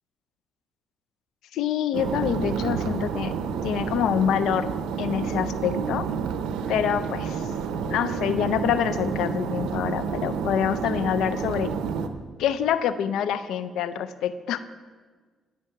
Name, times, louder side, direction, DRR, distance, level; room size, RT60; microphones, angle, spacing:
voice 1, 1.5-3.3 3.6-4.7 5.0-6.1 6.7-7.4 7.9-11.7 12.4-14.6, left 9 dB, 85° left, 13 dB, 0.4 m, -26 dB
sound 1, 1.9-12.1, right 6 dB, 90° right, 0.6 m, -29 dB
12.0 x 5.9 x 4.6 m, 1.5 s
cardioid pair, 90°, 0 cm